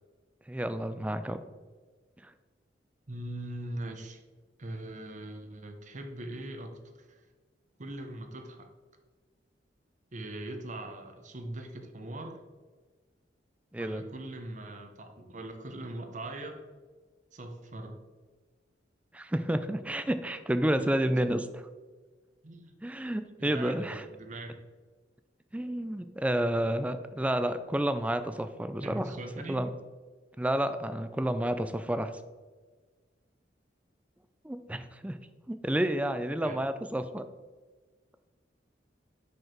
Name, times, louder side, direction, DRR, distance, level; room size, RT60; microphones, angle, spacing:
voice 1, 0.5-1.4 2.2-2.3 13.7-14.0 19.1-21.7 22.8-24.0 25.5-29.1 29.5-29.7 30.4-32.1 34.4-35.2 35.5-37.2, right 1 dB, 5° right, 10 dB, 0.3 m, -30 dB
voice 2, 3.1-4.2 4.6-7.3 7.8-8.7 10.1-12.4 13.8-16.7 17.3-18.0 22.4-22.7 23.4-24.5 28.8-29.6 36.4-36.6 36.9-37.0, right 1 dB, 40° right, 5 dB, 0.8 m, -41 dB
5.9 x 5.3 x 4.4 m, 1.3 s
head